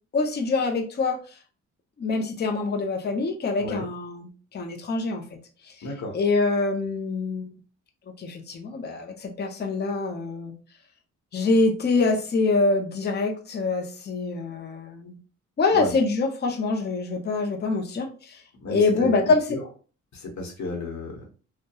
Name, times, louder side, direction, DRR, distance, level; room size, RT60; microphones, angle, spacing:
voice 1, 0.1-1.4 2.0-5.4 5.6-5.8 6.1-7.5 8.2-10.5 11.3-15.2 15.6-18.4 18.7-19.4, left 3 dB, 35° left, 3 dB, 0.5 m, -25 dB
voice 2, 5.8-6.2 15.7-15.9 18.6-19.1 19.5-19.6 20.1-21.3, left 2 dB, 65° left, 0 dB, 1.0 m, -33 dB
2.7 x 2.2 x 2.2 m, 0.37 s
cardioid pair, 90°, 30 cm